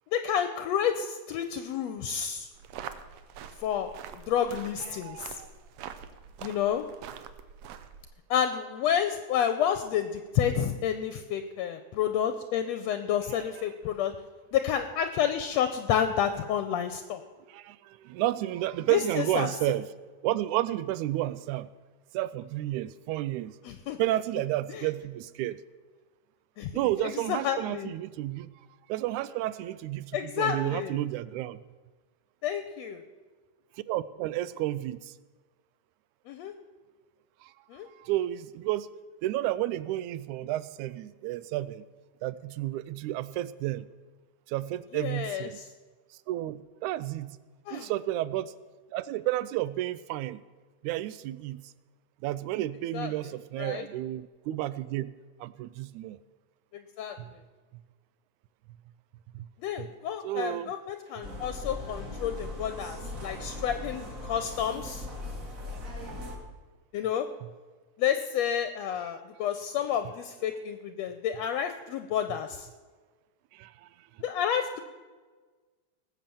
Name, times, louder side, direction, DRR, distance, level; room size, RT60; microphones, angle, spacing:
voice 1, 0.1-2.5 3.6-3.9 4.3-5.4 6.4-6.8 8.3-14.1 14.5-17.2 18.9-19.5 23.6-24.0 24.7-24.9 26.6-26.7 27.0-27.9 30.1-31.0 32.4-33.0 36.3-36.5 37.7-37.9 44.9-45.5 47.7-47.9 52.9-53.1 53.6-53.9 56.7-57.2 59.6-65.0 66.9-67.3 68.0-72.7 74.2-74.8, left 9 dB, 75° left, 9 dB, 1.7 m, -30 dB
sound 1, 2.5-8.1, right 8 dB, 70° right, 1.7 m, -45 dB
voice 2, 4.8-5.5 13.3-13.7 17.5-19.9 20.2-21.7 22.1-23.6 24.0-25.6 26.7-28.5 28.9-31.6 33.9-35.1 37.4-37.5 37.9-38.9 39.2-41.9 42.2-43.9 44.5-45.6 46.3-47.4 47.7-48.5 48.9-50.4 50.8-51.6 52.2-55.1 55.4-56.2 57.2-57.3 59.3-59.5 59.8-59.9 60.2-60.7 73.5-73.9, right 15 dB, 85° right, 17 dB, 2.0 m, -31 dB
sound 2, 61.2-66.4, left 2 dB, 30° right, 2.1 m, -39 dB
18.5 x 7.6 x 7.0 m, 1.4 s
omnidirectional pair, 3.4 m